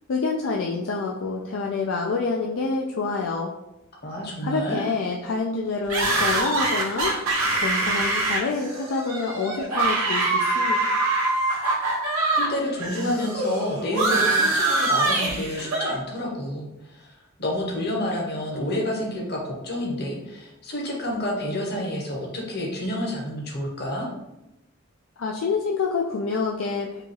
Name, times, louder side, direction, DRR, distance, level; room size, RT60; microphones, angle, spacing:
voice 1, 0.1-3.5 4.4-7.1 7.6-10.9 25.2-27.0, left 4 dB, 70° left, 0 dB, 0.4 m, -27 dB
voice 2, 4.0-4.8 12.3-17.1 17.4-24.1, left 1 dB, 50° left, -2 dB, 1.1 m, -29 dB
sound 1, 5.9-12.5 12.8-15.9, right 2 dB, 90° right, 1.3 m, -24 dB
4.8 x 2.4 x 3.2 m, 0.95 s
head